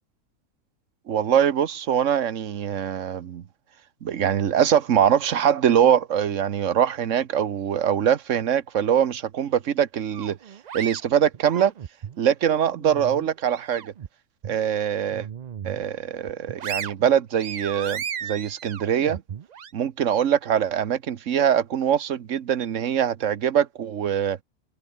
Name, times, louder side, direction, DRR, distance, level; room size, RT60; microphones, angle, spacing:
voice 1, 1.1-3.4 4.0-10.4 10.7-11.7 12.2-13.9 14.4-15.3 15.6-19.2 19.7-24.4, right 9 dB, 60° right, 1.3 m, -23 dB
sound 1, 10.1-12.2 12.6-14.1 14.4-14.6 15.1-15.8 16.2-19.7, right 8 dB, 85° right, 0.3 m, -35 dB
omnidirectional pair, 1.5 m